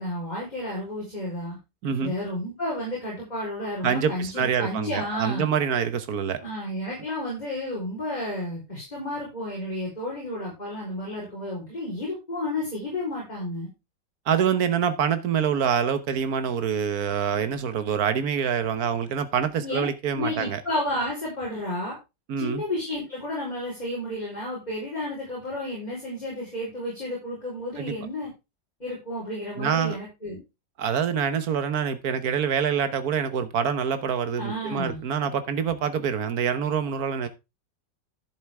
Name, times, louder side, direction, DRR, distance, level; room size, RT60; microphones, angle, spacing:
voice 1, 0.0-1.6 2.0-5.5 6.4-13.7 19.6-19.9 20.1-21.9 22.4-28.3 28.8-30.4 34.4-35.0, left 1 dB, 20° left, 4.3 m, -32 dB
voice 2, 1.8-2.1 3.8-6.4 14.3-20.6 22.3-22.6 27.8-27.9 29.6-30.0 30.8-37.3, right 7 dB, 55° right, 1.5 m, -26 dB
11.0 x 7.6 x 3.5 m
omnidirectional pair, 2.0 m